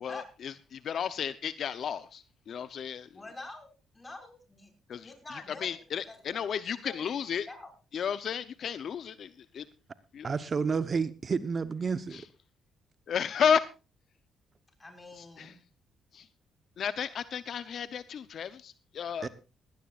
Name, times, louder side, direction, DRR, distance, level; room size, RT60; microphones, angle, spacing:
voice 1, 0.0-3.1 4.9-5.1 5.6-7.5 7.9-9.6 10.1-10.3 12.1-12.2 13.1-13.6 15.2-15.5 16.1-16.3 16.8-19.3, left 7 dB, 60° left, 14 dB, 0.7 m, -32 dB
voice 2, 3.1-3.7 3.9-4.7 5.0-5.8 6.1-6.4 6.8-7.1 7.5-7.7 14.8-15.6, left 2 dB, 20° left, 4 dB, 5.8 m, -46 dB
voice 3, 10.2-12.2 19.2-19.3, right 5 dB, 40° right, 13 dB, 1.0 m, -30 dB
18.5 x 16.5 x 2.5 m, 0.31 s
cardioid pair, 90°, 0 cm